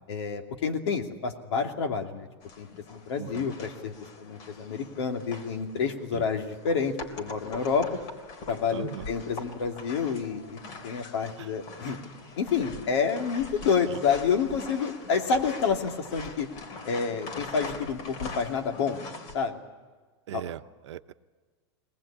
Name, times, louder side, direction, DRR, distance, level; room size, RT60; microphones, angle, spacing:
voice 1, 0.1-2.3 2.6-3.9 4.2-7.9 8.5-12.0 12.4-16.5 16.9-19.0 19.3-19.6 20.3-20.4, left 6 dB, 75° left, 3 dB, 2.6 m, -29 dB
sound 1, 2.4-19.4, left 3 dB, 50° left, 3.7 m, -43 dB
voice 2, 3.2-3.5 6.1-6.3 8.7-9.1 11.4-11.5 13.9-14.0 20.3-21.1, right 12 dB, 85° right, 11 dB, 0.8 m, -39 dB
21.0 x 19.5 x 8.7 m, 1.4 s
hypercardioid pair, 125°, 14 cm